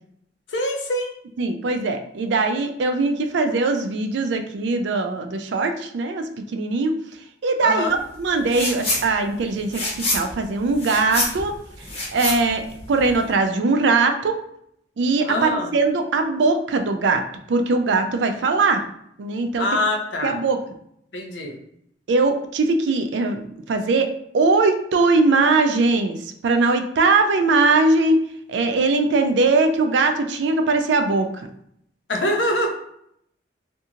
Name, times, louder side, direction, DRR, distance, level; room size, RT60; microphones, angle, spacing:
voice 1, 0.5-1.1 7.6-8.0 15.2-15.7 19.6-20.4 21.1-21.6 32.1-32.7, left 1 dB, 85° left, 2 dB, 0.6 m, -24 dB
voice 2, 1.4-7.0 7.4-11.6 12.1-14.3 15.0-17.2 17.5-18.8 19.2-19.7 20.2-20.6 22.1-24.1 24.3-28.2 28.5-31.5, right 3 dB, 75° right, 6 dB, 0.4 m, -20 dB
sound 1, 8.5-9.0 9.4-13.3, left 2 dB, 35° left, 0.8 m, -27 dB
2.8 x 2.6 x 2.4 m, 0.72 s
head